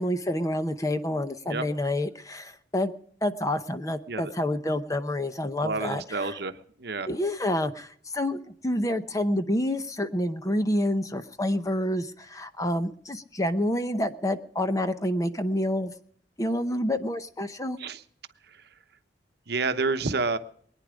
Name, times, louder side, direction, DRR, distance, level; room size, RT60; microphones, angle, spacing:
voice 1, 0.0-2.9 3.2-6.2 7.1-7.9 8.1-15.9 16.4-17.8, left 1 dB, 20° left, 10 dB, 0.8 m, -28 dB
voice 2, 5.6-7.1 17.8-18.0 18.5-18.6 19.5-20.4, right 3 dB, 60° right, 10 dB, 1.0 m, -29 dB
22.0 x 10.0 x 5.1 m, 0.62 s
head